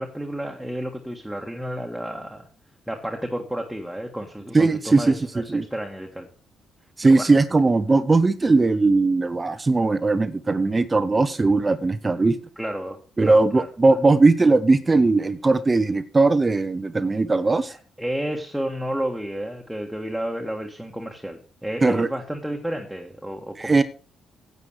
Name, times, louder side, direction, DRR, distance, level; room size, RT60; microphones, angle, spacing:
voice 1, 0.0-2.5 2.9-6.3 7.1-7.3 12.6-13.7 17.7-23.7, equal, ahead, 1 dB, 1.7 m, -31 dB
voice 2, 4.5-5.6 7.0-12.4 13.2-17.7 21.8-22.1 23.6-23.8, right 3 dB, 25° right, 12 dB, 0.8 m, -19 dB
9.6 x 8.4 x 6.4 m, 0.39 s
cardioid pair, 90°, 0 cm